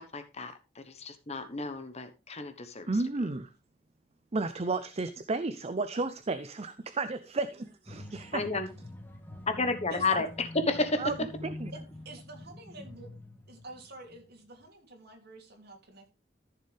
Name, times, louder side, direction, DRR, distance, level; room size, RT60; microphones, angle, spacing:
voice 1, 0.1-2.9 8.3-8.7 9.5-11.3, left 3 dB, 35° left, 9 dB, 1.2 m, -31 dB
voice 2, 2.9-3.5 4.3-8.6 10.1-10.2 11.0-11.1 11.4-11.7, right 3 dB, 35° right, 11 dB, 0.6 m, -33 dB
sound 1, 7.9-14.3 14.6-14.7, left 1 dB, 10° left, 1.8 m, -46 dB
voice 3, 11.7-13.1 13.5-16.1, right 2 dB, 60° right, 3 dB, 2.9 m, -48 dB
14.0 x 6.7 x 3.4 m, 0.27 s
head